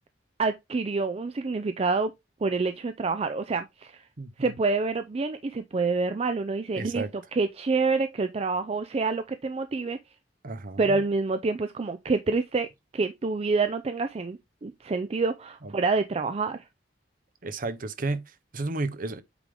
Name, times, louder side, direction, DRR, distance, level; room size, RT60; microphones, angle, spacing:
voice 1, 0.4-2.1 2.4-4.0 4.4-7.1 7.3-10.0 10.8-16.6, right 4 dB, 35° right, 0.4 m, -27 dB
voice 2, 4.2-4.5 6.7-7.1 10.4-11.0 15.6-15.7 17.4-19.2, right 3 dB, 50° right, 0.8 m, -33 dB
8.2 x 3.6 x 3.4 m
head